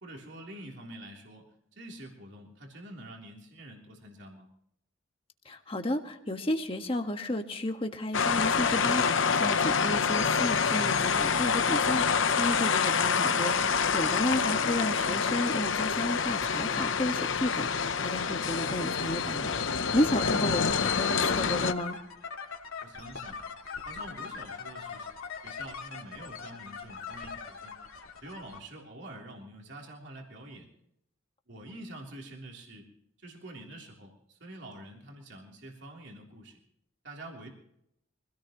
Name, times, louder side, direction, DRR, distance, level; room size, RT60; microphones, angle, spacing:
voice 1, 0.0-4.5 20.2-20.4 22.8-23.4 23.8-25.1 25.3-27.7 28.2-30.7 31.5-32.9 33.2-36.6 37.0-37.5, right 1 dB, 55° right, 0 dB, 3.4 m, -46 dB
voice 2, 5.4-22.0, left 1 dB, 25° left, 5 dB, 1.5 m, -32 dB
sound 1, 8.1-21.7, left 5 dB, 65° left, 0.8 m, -27 dB
sound 2, 20.7-28.6, left 5 dB, 85° left, 2.5 m, -41 dB
25.0 x 17.0 x 3.1 m, 0.77 s
head